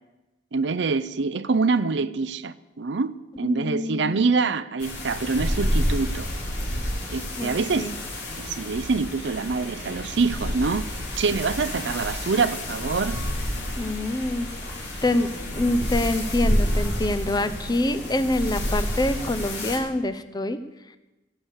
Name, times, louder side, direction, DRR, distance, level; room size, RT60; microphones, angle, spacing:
voice 1, 0.5-6.3 7.1-7.9 8.4-10.8 11.2-13.2, right 4 dB, 80° right, 0.6 m, -25 dB
voice 2, 3.4-4.2 7.4-8.0 13.8-14.5 15.0-20.6, left 1 dB, 25° left, 0.6 m, -26 dB
sound 1, 4.8-19.8, equal, 65° left, 3.5 m, -29 dB
17.0 x 6.7 x 7.2 m
head